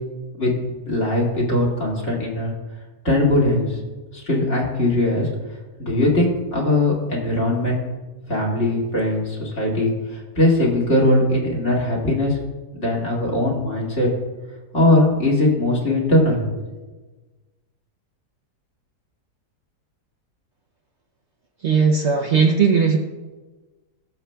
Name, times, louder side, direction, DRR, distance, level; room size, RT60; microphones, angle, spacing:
voice 1, 0.9-2.5 3.0-3.8 4.1-5.3 5.8-7.8 8.3-12.4 12.7-14.1 14.7-16.4, left 1 dB, 45° left, -2 dB, 2.5 m, -20 dB
voice 2, 21.6-23.0, right 5 dB, 55° right, 3 dB, 0.8 m, -17 dB
19.5 x 7.1 x 2.3 m, 1.3 s
omnidirectional pair, 1.7 m